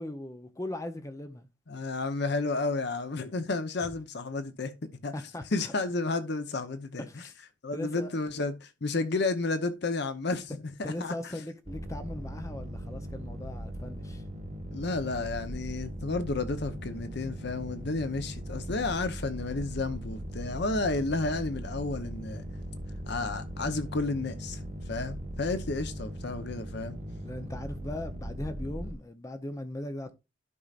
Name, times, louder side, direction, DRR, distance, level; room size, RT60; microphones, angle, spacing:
voice 1, 0.0-1.5 5.1-5.7 7.1-7.3 7.7-8.1 10.8-14.2 27.2-30.1, left 1 dB, 15° left, 0.6 m, -39 dB
voice 2, 1.7-4.7 5.0-5.1 5.5-7.1 7.6-10.5 10.8-11.1 14.7-22.4 23.1-24.6 24.9-27.0, left 3 dB, 60° left, 0.8 m, -31 dB
sound 1, 11.6-28.9, equal, 45° right, 1.6 m, -39 dB
12.0 x 5.5 x 2.4 m
head